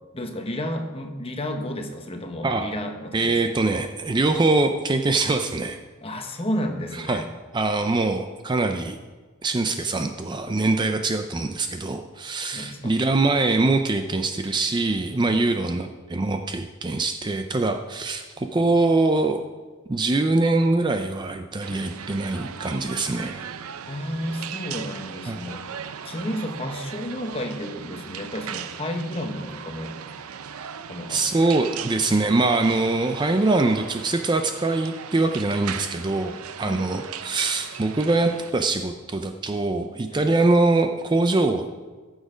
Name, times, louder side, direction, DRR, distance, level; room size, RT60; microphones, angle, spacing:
voice 1, 0.1-3.4 6.0-7.2 12.5-12.9 15.3-15.4 21.7-21.8 23.8-30.0 30.9-31.2 36.6-36.8 40.1-40.2, equal, 25° left, 4 dB, 1.0 m, -32 dB
voice 2, 3.1-5.8 6.9-7.3 7.5-9.0 9.4-19.4 19.9-23.5 25.3-25.6 31.1-41.7, right 2 dB, 20° right, 6 dB, 0.4 m, -23 dB
sound 1, 21.6-38.5, right 8 dB, 80° right, 0.6 m, -38 dB
14.5 x 6.4 x 5.0 m, 1.4 s
head